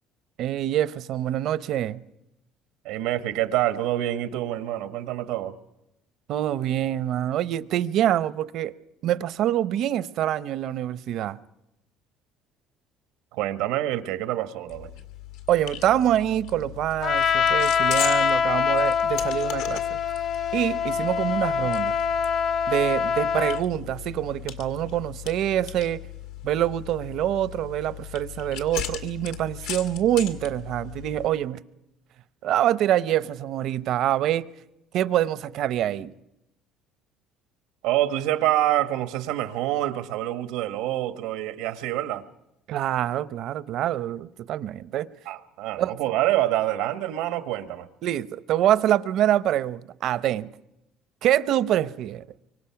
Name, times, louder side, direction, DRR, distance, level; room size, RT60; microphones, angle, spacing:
voice 1, 0.4-2.0 6.3-8.7 9.0-11.4 15.5-19.8 20.5-21.9 22.7-26.0 26.4-31.6 32.4-34.5 34.9-36.1 42.7-45.1 45.8-45.9 48.0-50.5 51.2-52.2, right 12 dB, 60° right, 0.7 m, -25 dB
voice 2, 2.8-5.6 13.3-14.9 37.8-42.2 45.2-47.9, right 14 dB, 90° right, 1.3 m, -26 dB
sound 1, 14.7-31.3, left 11 dB, 90° left, 2.0 m, -38 dB
Trumpet, 17.0-23.6, left 7 dB, 50° left, 0.9 m, -24 dB
25.0 x 24.0 x 5.9 m
cardioid pair, 135°, 0 cm